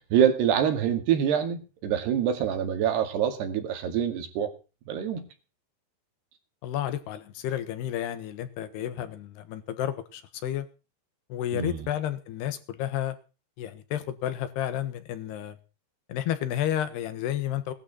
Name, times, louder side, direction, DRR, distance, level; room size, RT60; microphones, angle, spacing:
voice 1, 0.1-4.5 4.9-5.3 11.5-11.9, right 8 dB, 85° right, 7 dB, 4.2 m, -25 dB
voice 2, 6.6-10.7 11.3-13.2 13.6-15.6 16.1-17.7, left 11 dB, 90° left, 12 dB, 3.5 m, -31 dB
18.5 x 12.5 x 4.1 m, 0.33 s
omnidirectional pair, 4.6 m